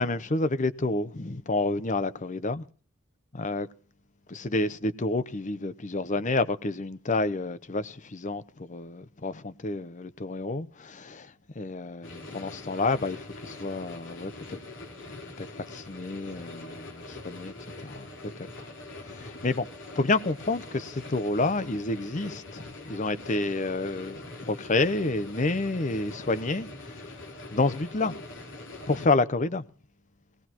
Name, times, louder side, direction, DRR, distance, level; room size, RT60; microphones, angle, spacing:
voice 1, 0.0-2.6 3.3-3.7 4.3-14.6 15.1-17.5 17.8-18.5 19.0-19.7 19.9-27.1 27.5-28.1 28.9-29.6, left 2 dB, 35° left, 0.8 m, -29 dB
sound 1, 12.0-29.1, left 2 dB, 60° left, 3.6 m, -43 dB
19.0 x 18.0 x 3.0 m
head